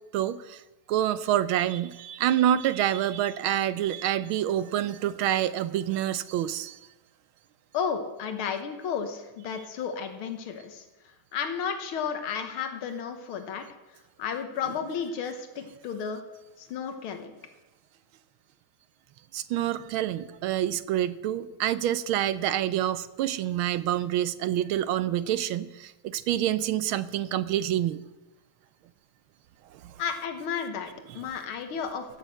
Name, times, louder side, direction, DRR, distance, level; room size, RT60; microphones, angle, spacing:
voice 1, 0.1-0.6 0.9-6.8 19.3-28.0 29.7-29.9 31.1-31.2, right 11 dB, 80° right, 14 dB, 1.4 m, -27 dB
voice 2, 7.7-10.9 11.3-13.7 14.2-16.2 16.6-17.3 30.0-32.2, left 7 dB, 80° left, 6 dB, 2.0 m, -33 dB
16.0 x 6.3 x 7.7 m, 1.0 s
omnidirectional pair, 2.3 m